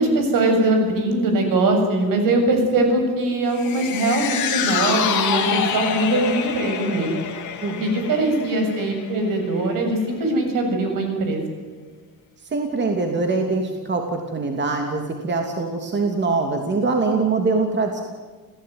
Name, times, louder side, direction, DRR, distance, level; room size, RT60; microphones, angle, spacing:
voice 1, 0.0-7.3 7.8-11.4, right 2 dB, 65° right, 4 dB, 7.5 m, -21 dB
sound 1, 3.6-10.0 10.4-10.5, left 7 dB, 55° left, 3.3 m, -27 dB
voice 2, 12.5-18.0, right 3 dB, 30° right, 3 dB, 3.0 m, -23 dB
29.5 x 17.0 x 9.7 m, 1.4 s
cardioid pair, 140°, 35 cm